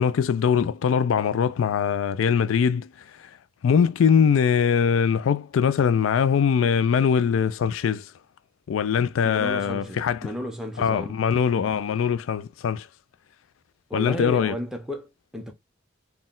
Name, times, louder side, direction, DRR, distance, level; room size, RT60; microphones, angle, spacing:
voice 1, 0.0-2.9 3.2-3.3 3.6-8.1 8.7-10.3 10.8-12.9 13.9-14.5, left 7 dB, 90° left, 0.3 m, -22 dB
voice 2, 9.2-11.2 13.9-15.5, equal, ahead, 0.7 m, -33 dB
4.2 x 2.3 x 3.7 m
head